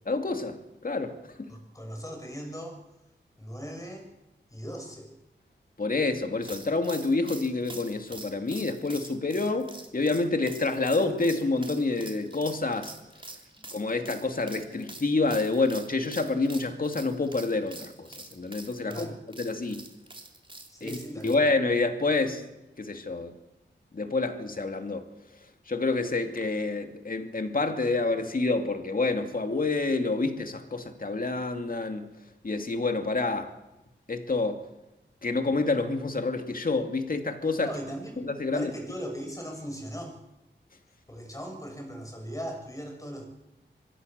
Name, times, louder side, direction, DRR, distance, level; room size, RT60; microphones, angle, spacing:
voice 1, 0.1-1.5 5.8-12.9 13.7-19.8 20.8-21.0 21.2-22.4 22.8-23.3 23.9-25.1 25.7-32.1 32.4-33.5 34.1-34.6 35.2-37.7 38.2-38.7, left 3 dB, 50° left, 6 dB, 2.6 m, -28 dB
voice 2, 1.5-2.8 3.4-4.1 4.5-5.1 13.5-13.7 18.8-19.1 20.7-21.5 37.6-38.2 38.5-40.2 41.1-43.2, equal, 15° left, 2 dB, 6.9 m, -39 dB
sound 1, 6.4-21.3, right 2 dB, 25° right, 3.4 m, -45 dB
25.5 x 20.5 x 6.8 m, 1.0 s
wide cardioid pair, 85°, 19 cm